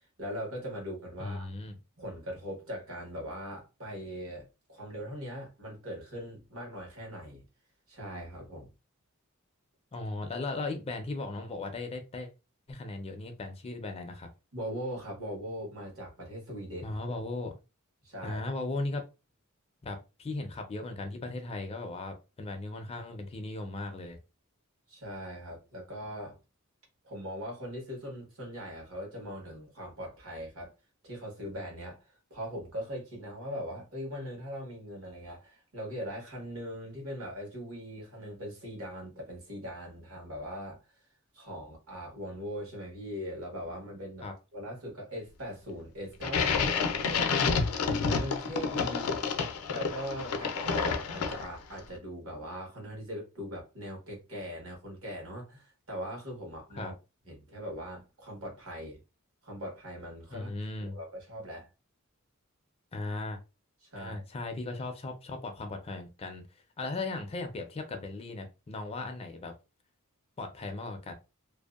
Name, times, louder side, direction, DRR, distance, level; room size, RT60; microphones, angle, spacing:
voice 1, 0.2-1.5 2.0-7.4 7.9-8.7 14.5-17.0 18.0-18.4 24.9-26.4 27.0-30.7 31.0-40.9 41.3-47.7 48.1-49.2 49.7-56.9 57.3-59.0 59.4-60.5 60.8-61.7 63.8-64.2, equal, 70° right, 1.2 m, -40 dB
voice 2, 1.2-1.8 9.9-12.3 12.7-14.3 16.8-17.5 18.2-19.0 19.8-24.2 44.2-44.3 56.7-56.9 60.3-61.0 62.9-63.4 63.9-66.5 66.8-69.5 70.4-71.1, left 2 dB, 30° left, 0.4 m, -37 dB
sound 1, 46.2-51.7, left 5 dB, 90° left, 0.4 m, -29 dB
2.6 x 2.0 x 2.3 m
head